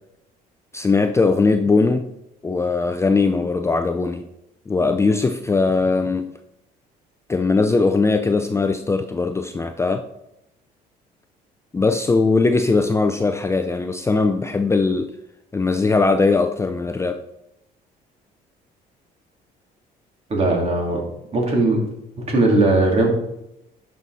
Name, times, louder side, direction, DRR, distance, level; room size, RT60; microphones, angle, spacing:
voice 1, 0.7-2.1 2.4-4.2 4.7-6.3 7.3-10.1 11.7-15.1 15.5-17.2, left 3 dB, 15° left, 0.5 m, -20 dB
voice 2, 20.3-21.0 21.3-21.8 22.3-23.1, right 2 dB, 35° right, 2.9 m, -18 dB
11.0 x 5.7 x 4.1 m
cardioid pair, 110°, 17 cm